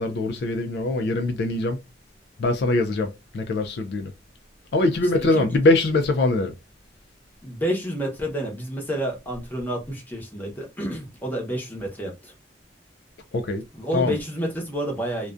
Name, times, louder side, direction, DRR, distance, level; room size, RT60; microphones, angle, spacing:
voice 1, 0.0-1.8 2.4-4.1 4.7-6.5 13.3-13.6 13.9-14.2, left 2 dB, 60° left, 0.3 m, -22 dB
voice 2, 7.4-12.3 13.7-15.3, equal, 10° left, 0.8 m, -29 dB
2.4 x 2.2 x 2.4 m
head